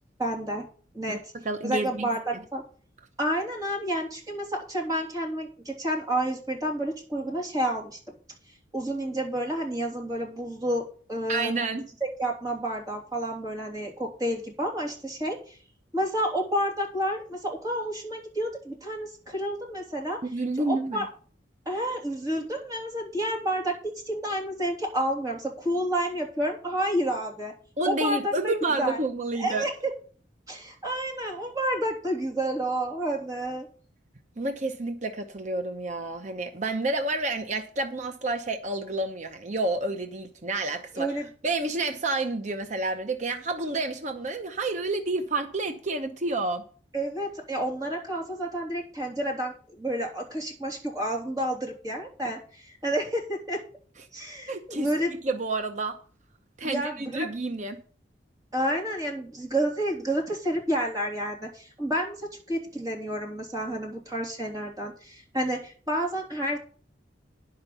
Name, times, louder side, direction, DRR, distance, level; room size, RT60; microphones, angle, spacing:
voice 1, 0.2-0.7 0.9-1.3 1.6-2.6 3.2-8.0 8.7-11.5 12.0-15.6 15.9-20.2 20.7-21.1 21.6-27.5 27.8-29.0 29.4-29.7 30.5-33.7 40.9-41.3 46.9-53.6 54.1-55.1 56.6-57.3 58.5-66.6, right 1 dB, 20° right, 3.1 m, -30 dB
voice 2, 1.4-2.0 11.3-11.8 20.2-21.1 27.8-29.7 34.4-41.1 41.4-46.6 54.5-54.9 55.2-56.0 56.6-57.8, right 2 dB, 40° right, 0.9 m, -29 dB
10.5 x 5.7 x 6.8 m
head